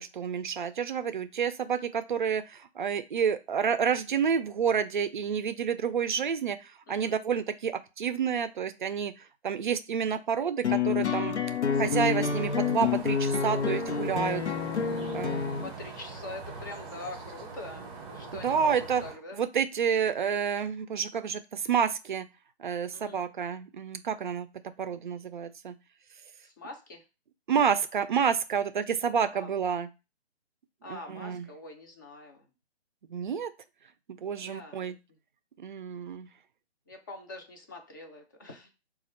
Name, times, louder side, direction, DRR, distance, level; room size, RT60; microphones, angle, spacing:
voice 1, 0.0-2.4 2.8-6.6 6.9-9.1 9.4-11.3 11.8-14.4 15.1-15.4 18.3-19.0 19.3-22.2 22.6-24.5 24.8-25.7 27.5-29.9 30.9-31.5 33.1-33.5 34.1-34.9 35.6-36.3, right 7 dB, 50° right, 11 dB, 0.4 m, -29 dB
voice 2, 6.9-7.2 14.6-19.4 22.9-23.2 26.4-27.0 29.3-29.5 30.8-32.4 34.4-34.9 36.9-38.7, left 2 dB, 20° left, 2 dB, 0.5 m, -44 dB
sound 1, 10.6-15.7, left 6 dB, 90° left, 0.7 m, -28 dB
sound 2, 11.7-19.1, right 4 dB, 20° right, 0.7 m, -42 dB
4.1 x 2.4 x 4.2 m, 0.28 s
figure-of-eight pair, 145°, 33 cm